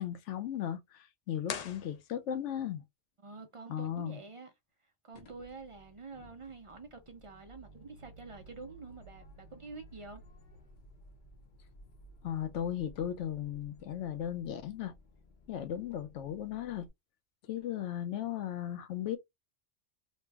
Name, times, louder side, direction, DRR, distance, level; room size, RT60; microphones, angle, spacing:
voice 1, 0.0-2.8 3.7-4.2 12.2-14.9 15.5-16.9 17.5-19.2, left 10 dB, 85° left, 1.0 m, -36 dB
sound 1, 1.4-2.6, left 7 dB, 70° left, 0.4 m, -42 dB
voice 2, 3.2-4.5 4.8-10.2, right 4 dB, 60° right, 0.3 m, -48 dB
sound 2, 5.1-16.9, equal, 50° left, 0.8 m, -57 dB
3.2 x 2.0 x 3.3 m
omnidirectional pair, 1.2 m